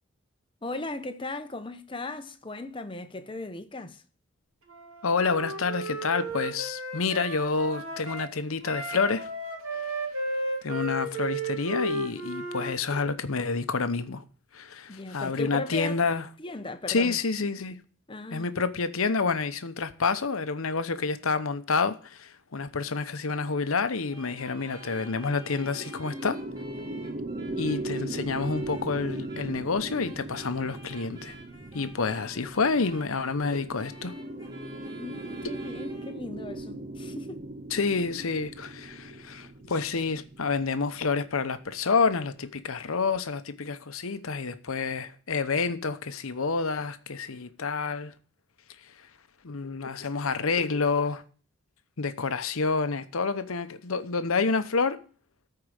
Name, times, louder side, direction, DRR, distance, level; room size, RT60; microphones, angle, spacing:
voice 1, 0.6-4.0 14.9-16.0 16.4-17.2 18.1-18.5 35.0-37.4, left 2 dB, 25° left, 0.7 m, -37 dB
Wind instrument woodwind instrument, 4.7-8.3 8.6-12.8, right 1 dB, 80° right, 2.7 m, -34 dB
voice 2, 5.0-9.3 10.6-14.2 14.5-16.2 16.9-17.8 18.3-26.4 27.6-31.4 31.7-34.2 37.7-48.1 49.4-51.2 52.0-55.0, left 4 dB, 75° left, 0.8 m, -28 dB
sound 1, 24.1-36.2, right 1 dB, 20° right, 2.7 m, -49 dB
sound 2, 24.7-42.1, right 2 dB, 35° right, 0.6 m, -39 dB
13.5 x 4.8 x 6.4 m
head